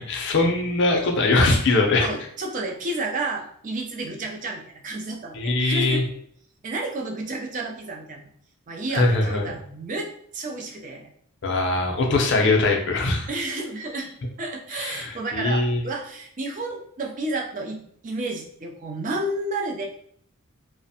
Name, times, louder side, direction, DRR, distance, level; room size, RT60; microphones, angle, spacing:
voice 1, 0.0-2.1 5.3-6.0 8.9-9.5 11.4-13.3 14.7-15.8, left 2 dB, 55° left, 2 dB, 0.5 m, -21 dB
voice 2, 2.0-6.0 6.6-8.3 8.7-11.1 13.3-14.1 14.4-19.8, right 2 dB, 35° right, 1 dB, 0.4 m, -31 dB
2.5 x 2.1 x 2.7 m, 0.65 s
head